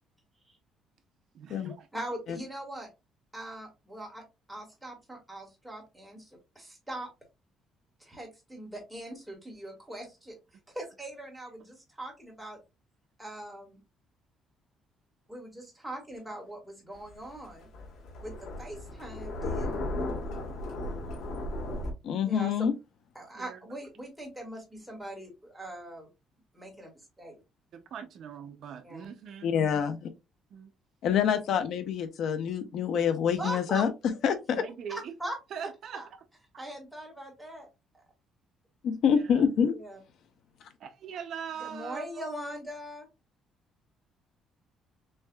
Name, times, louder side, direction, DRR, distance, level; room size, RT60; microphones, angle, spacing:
voice 1, 1.3-1.9 20.8-21.0 23.3-23.6 27.7-29.8 30.5-30.7 34.5-35.1 35.5-36.0 39.1-39.5 40.8-42.2, right 7 dB, 50° right, 0.5 m, -42 dB
voice 2, 1.9-2.9 3.3-4.2 4.5-6.3 6.5-7.1 8.0-10.3 10.7-12.6 13.2-13.8 15.3-17.7 18.2-18.3 18.6-19.9 22.2-22.7 23.1-26.1 26.5-26.9 27.2-27.3 28.8-29.1 33.4-33.8 34.9-35.3 35.9-36.1 36.6-37.7 37.9-38.0 39.6-40.0 41.6-43.1, right 1 dB, ahead, 1.7 m, -41 dB
Thunder, 16.9-21.9, left 1 dB, 85° left, 1.5 m, -35 dB
voice 3, 22.0-22.7 29.4-30.1 31.0-33.9 34.2-34.6 38.8-39.8, left 7 dB, 55° left, 0.6 m, -26 dB
6.4 x 2.7 x 2.2 m
cardioid pair, 175°, 0 cm